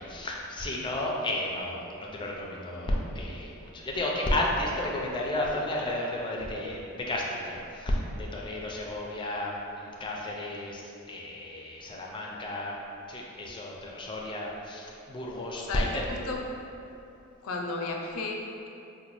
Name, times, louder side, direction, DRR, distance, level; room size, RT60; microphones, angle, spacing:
voice 1, 0.0-12.8 13.1-16.0, left 1 dB, 25° left, -2 dB, 0.4 m, -32 dB
voice 2, 15.6-16.5 17.4-18.7, left 3 dB, 85° left, 1 dB, 0.4 m, -34 dB
3.9 x 2.1 x 3.0 m, 2.8 s
head